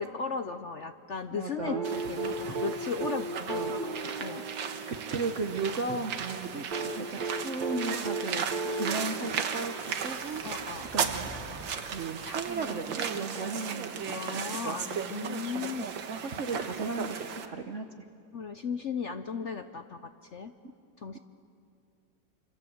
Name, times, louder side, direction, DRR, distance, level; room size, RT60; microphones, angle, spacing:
voice 1, 0.0-3.6 4.0-4.4 10.4-10.9 14.1-15.9 18.3-20.5 21.0-21.2, left 5 dB, 55° left, 8 dB, 0.8 m, -36 dB
voice 2, 1.3-1.9 3.3-3.7 4.9-8.5 8.8-10.4 10.9-11.3 11.9-14.8 16.2-17.2 17.4-17.9, right 4 dB, 45° right, 5 dB, 1.2 m, -35 dB
sound 1, 1.7-5.8 6.7-10.3 11.7-11.8, right 3 dB, 25° right, 1.7 m, -35 dB
sound 2, 1.8-17.5, right 7 dB, 90° right, 2.0 m, -36 dB
sound 3, 7.9-11.8, equal, 15° left, 3.8 m, -48 dB
27.5 x 26.0 x 7.9 m, 2.5 s
omnidirectional pair, 2.0 m